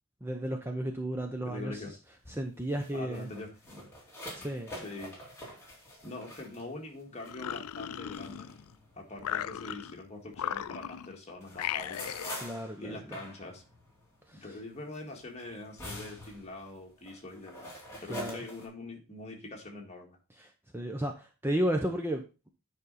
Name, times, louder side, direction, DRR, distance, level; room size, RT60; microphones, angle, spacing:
voice 1, 0.2-2.0 2.3-3.3 4.4-4.7 12.4-13.2 14.3-14.4 18.1-18.4 20.4-22.5, right 1 dB, 10° right, 4 dB, 0.7 m, -34 dB
voice 2, 1.4-1.9 2.9-3.9 4.7-5.2 6.0-8.6 8.9-12.2 12.8-13.6 14.3-20.2, left 2 dB, 30° left, 1 dB, 1.8 m, -44 dB
sound 1, 2.1-10.6 11.0-18.6, left 1 dB, 10° left, 2.5 m, -47 dB
sound 2, 7.2-8.7 9.2-10.0 10.3-11.1 11.5-12.4, left 10 dB, 80° left, 0.4 m, -37 dB
9.5 x 5.2 x 4.1 m, 0.31 s
head